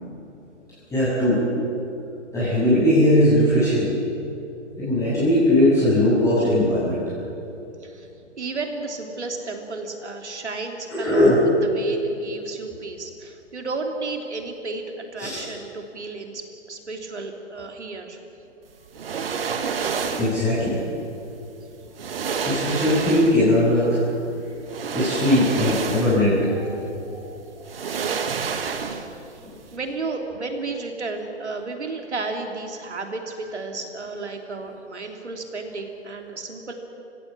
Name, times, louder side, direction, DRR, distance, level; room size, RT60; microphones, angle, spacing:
voice 1, 0.9-1.4 2.3-4.0 4.8-7.1 10.9-11.4 15.2-15.4 20.2-20.8 22.4-24.0 24.9-27.2 28.1-28.4 29.4-29.5, left 1 dB, 10° left, -11 dB, 7.0 m, -20 dB
voice 2, 8.4-11.3 11.6-18.2 27.8-29.4 29.7-36.7, right 3 dB, 70° right, 4 dB, 3.2 m, -33 dB
sound 1, 18.9-20.5 21.5-21.6 22.0-23.6 24.7-26.4 26.7-26.8 27.6-29.3 29.5-29.7, right 6 dB, 55° right, 1.7 m, -28 dB
29.5 x 16.0 x 7.5 m, 2.8 s
figure-of-eight pair, 125°, 35 cm